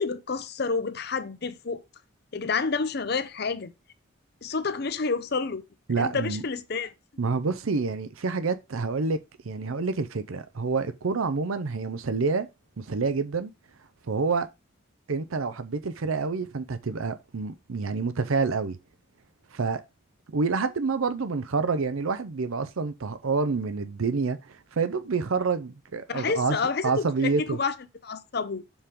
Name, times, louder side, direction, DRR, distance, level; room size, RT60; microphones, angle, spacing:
voice 1, 0.0-1.8 2.3-3.7 4.4-5.6 6.0-6.9 26.1-27.7 28.0-28.6, left 4 dB, 50° left, 0.6 m, -29 dB
voice 2, 5.9-6.4 7.2-9.2 9.4-12.5 12.8-13.5 14.1-14.5 15.1-18.8 19.5-19.8 20.3-26.6 26.8-27.6, right 4 dB, 85° right, 0.6 m, -28 dB
7.1 x 3.8 x 5.0 m
head